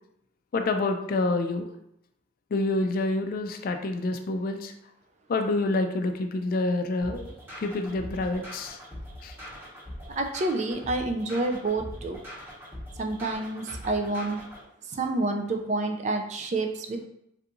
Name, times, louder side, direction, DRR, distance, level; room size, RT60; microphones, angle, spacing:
voice 1, 0.5-1.7 2.5-4.7 5.3-7.3 7.6-8.8 9.2-9.3, left 2 dB, 50° left, 6 dB, 0.3 m, -27 dB
sound 1, 7.0-14.6, equal, 10° right, 1.3 m, -42 dB
voice 2, 10.2-12.2 13.0-14.4 14.9-17.1, right 2 dB, 35° right, 4 dB, 0.3 m, -28 dB
3.4 x 2.9 x 2.5 m, 0.78 s
head